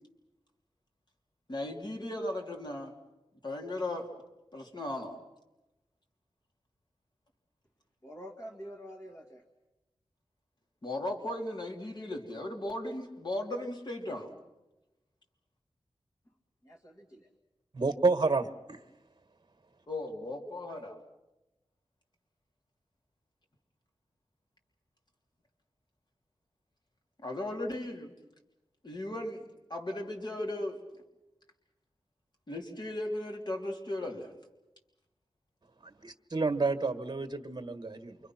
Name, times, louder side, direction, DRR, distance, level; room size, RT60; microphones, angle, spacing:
voice 1, 1.5-2.9 3.4-4.1 4.5-5.2 10.8-14.3 19.9-21.0 27.2-28.1 28.8-29.4 29.7-30.8 32.5-34.3, left 1 dB, 45° left, 2 dB, 3.4 m, -36 dB
voice 2, 8.0-9.4 16.6-17.3, equal, 30° left, 0 dB, 2.4 m, -47 dB
voice 3, 17.7-18.8 35.8-38.2, right 3 dB, 45° right, 8 dB, 1.7 m, -30 dB
28.5 x 25.0 x 6.1 m, 1.0 s
wide cardioid pair, 95°, 10 cm